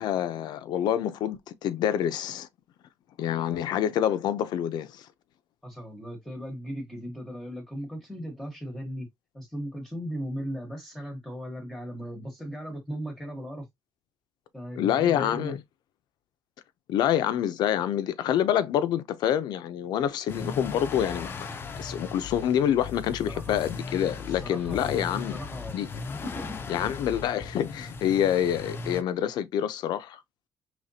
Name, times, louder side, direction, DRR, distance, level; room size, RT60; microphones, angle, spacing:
voice 1, 0.0-2.5 3.2-5.1 14.8-15.6 16.9-25.4 25.7-25.9 26.7-30.2, left 10 dB, 80° left, 0.6 m, -27 dB
voice 2, 5.6-9.1 9.3-13.6 14.5-15.5 23.3-23.7 24.2-24.9 25.1-25.8 26.2-26.6, equal, 5° left, 1.1 m, -37 dB
sound 1, 20.3-29.0, left 4 dB, 30° left, 0.5 m, -38 dB
5.0 x 3.2 x 2.7 m
cardioid pair, 165°, 7 cm